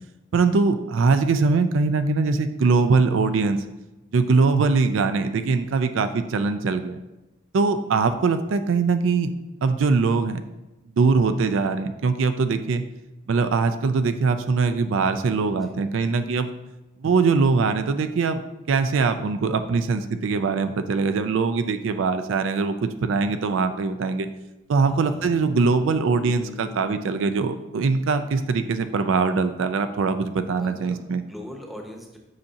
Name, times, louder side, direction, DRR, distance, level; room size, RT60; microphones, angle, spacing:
voice 1, 0.3-3.6 4.1-7.0 7.5-9.3 9.6-10.4 11.0-12.8 13.3-16.5 17.0-18.4 18.7-24.3 24.7-31.2, right 4 dB, 65° right, 9 dB, 0.4 m, -22 dB
voice 2, 24.8-25.3 30.6-31.0 31.3-32.2, equal, ahead, 1 dB, 0.8 m, -40 dB
Bass guitar, 25.5-29.6, left 9 dB, 85° left, 1.3 m, -43 dB
7.7 x 5.7 x 2.8 m, 1.0 s
head